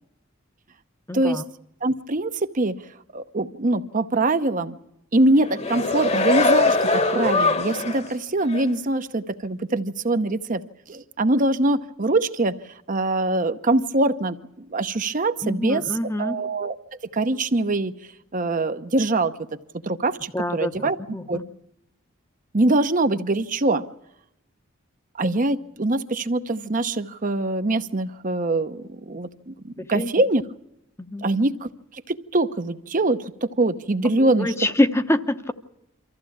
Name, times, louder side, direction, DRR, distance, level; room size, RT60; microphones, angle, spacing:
voice 1, 1.1-1.4 15.4-16.4 20.3-21.4 29.9-30.1 31.0-31.2 34.2-35.5, left 1 dB, 15° left, 9 dB, 0.9 m, -25 dB
voice 2, 1.8-2.7 3.1-4.8 5.1-10.6 10.9-12.5 12.9-16.8 17.1-17.9 18.3-19.3 19.8-21.0 21.3-21.4 22.5-23.8 25.2-30.4 31.2-31.7 32.1-34.5, right 2 dB, 40° right, 10 dB, 0.9 m, -23 dB
sound 1, 5.4-8.1 8.5-8.6, left 3 dB, 30° left, 1.2 m, -21 dB
24.5 x 15.0 x 8.6 m, 0.84 s
head